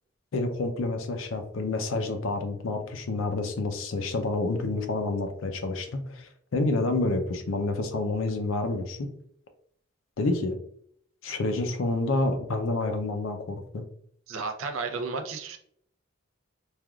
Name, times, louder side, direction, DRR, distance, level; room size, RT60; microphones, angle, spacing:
voice 1, 0.3-9.1 10.2-10.6 11.2-13.8, left 2 dB, 75° left, 6 dB, 0.5 m, -28 dB
voice 2, 14.3-15.6, right 4 dB, 80° right, 5 dB, 0.5 m, -33 dB
3.3 x 2.3 x 2.3 m, 0.66 s
head